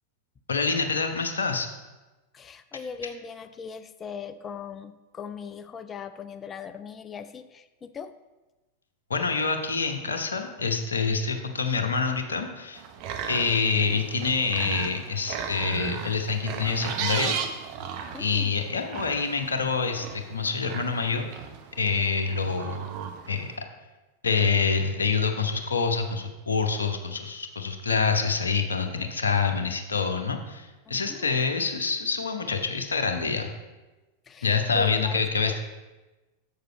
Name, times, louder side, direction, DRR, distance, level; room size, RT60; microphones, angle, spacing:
voice 1, 0.5-1.7 9.1-12.8 13.3-17.3 18.2-21.3 21.8-22.9 23.3-23.5 24.2-33.5 34.4-35.6, left 5 dB, 70° left, 5 dB, 0.8 m, -26 dB
voice 2, 2.3-8.1 18.1-18.6 30.9-31.5 34.3-35.6, left 6 dB, 20° left, 11 dB, 0.5 m, -40 dB
sound 1, 12.7-23.6, right 7 dB, 45° right, 0.8 m, -36 dB
7.2 x 6.7 x 4.6 m, 1.1 s
figure-of-eight pair, 90°, 0 cm